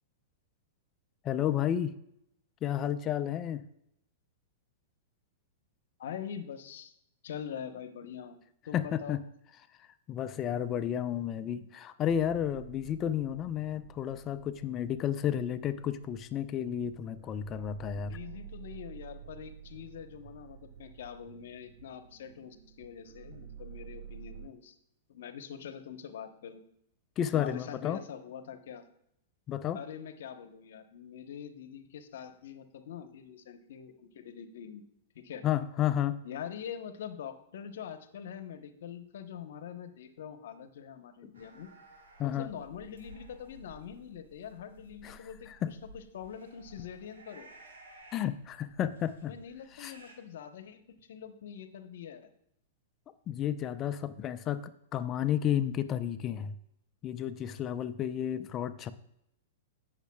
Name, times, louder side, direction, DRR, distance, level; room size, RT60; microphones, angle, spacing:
voice 1, 1.2-1.9 2.6-3.6 8.7-9.2 10.1-18.2 27.2-28.0 29.5-29.8 35.4-36.2 42.2-42.5 45.0-45.7 48.1-49.3 49.8-49.9 53.3-54.6 54.9-56.5 57.0-58.9, left 10 dB, 30° left, 11 dB, 0.6 m, -32 dB
voice 2, 6.0-6.9 7.2-8.4 8.7-9.2 17.9-24.8 25.1-26.6 27.3-28.8 29.7-34.8 35.1-35.4 36.2-41.7 42.2-47.5 49.2-52.3, left 8 dB, 70° left, 9 dB, 1.0 m, -44 dB
sound 1, 12.1-24.5, right 8 dB, 60° right, 0.7 m, -50 dB
sound 2, 41.3-50.1, right 1 dB, 85° right, 2.6 m, -55 dB
17.5 x 6.6 x 2.3 m, 0.78 s
hypercardioid pair, 115°, 0 cm